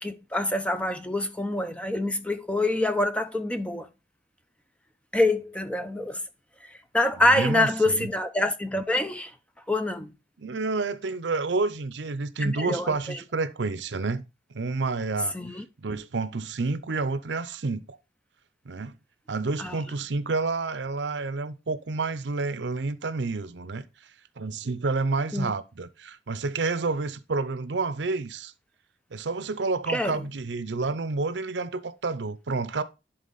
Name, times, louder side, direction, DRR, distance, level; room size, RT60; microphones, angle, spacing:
voice 1, 0.0-3.9 5.1-6.2 6.9-9.3 9.7-10.1 12.4-13.2 15.3-15.6 19.6-19.8 25.3-25.5 29.9-30.2, left 1 dB, 5° left, 0.6 m, -26 dB
voice 2, 7.2-8.1 10.4-14.2 14.5-15.3 15.8-18.0 18.7-19.0 19.3-23.8 24.4-28.5 29.1-32.8, right 3 dB, 75° right, 0.6 m, -29 dB
11.0 x 3.8 x 4.0 m
head